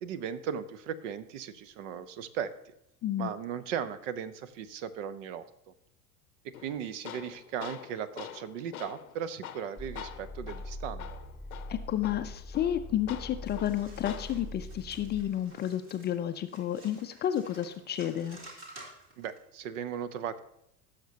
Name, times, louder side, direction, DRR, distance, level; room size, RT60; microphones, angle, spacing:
voice 1, 0.0-2.5 3.2-5.5 6.6-11.2 19.2-20.4, right 8 dB, 60° right, 15 dB, 0.8 m, -37 dB
voice 2, 3.0-3.3 11.7-18.4, left 11 dB, 25° left, 9 dB, 0.4 m, -31 dB
Tools, 6.5-14.5, left 10 dB, 75° left, 0.7 m, -46 dB
sound 1, 9.8-15.2, left 1 dB, 10° right, 1.3 m, -43 dB
sound 2, 13.5-19.4, right 2 dB, 30° right, 2.7 m, -52 dB
16.0 x 6.6 x 2.8 m, 0.79 s
figure-of-eight pair, 75°, 43 cm